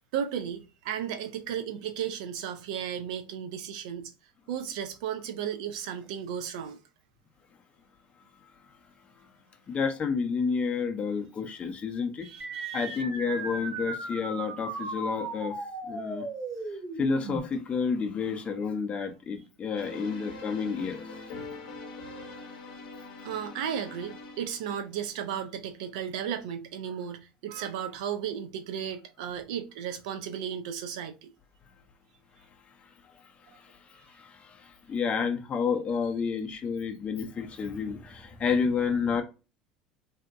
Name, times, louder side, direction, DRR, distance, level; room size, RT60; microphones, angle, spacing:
voice 1, 0.1-4.1 4.5-6.8 12.2-13.0 23.2-31.3, right 8 dB, 70° right, 0.5 m, -34 dB
voice 2, 9.7-12.3 12.7-15.6 15.9-16.3 17.0-21.2 33.5-39.2, left 5 dB, 30° left, 0.5 m, -30 dB
sound 1, 12.4-17.4, right 2 dB, 35° right, 1.0 m, -36 dB
sound 2, 19.8-24.9, left 3 dB, 70° left, 0.7 m, -43 dB
2.7 x 2.1 x 2.5 m
hypercardioid pair, 70°, 4 cm